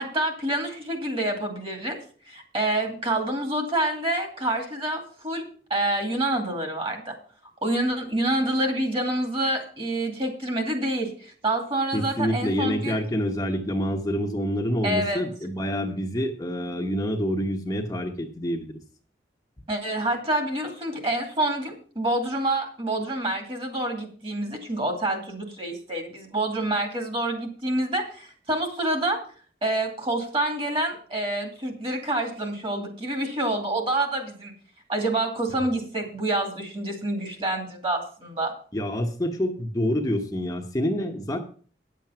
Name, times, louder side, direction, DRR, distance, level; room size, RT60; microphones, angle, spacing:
voice 1, 0.0-2.0 2.3-7.2 7.6-13.0 14.8-15.2 19.7-29.2 29.6-34.5 34.9-38.5, right 1 dB, 30° right, 4 dB, 2.4 m, -27 dB
voice 2, 11.9-18.8 38.7-41.4, equal, 20° left, 2 dB, 1.0 m, -27 dB
9.9 x 7.5 x 5.7 m, 0.43 s
head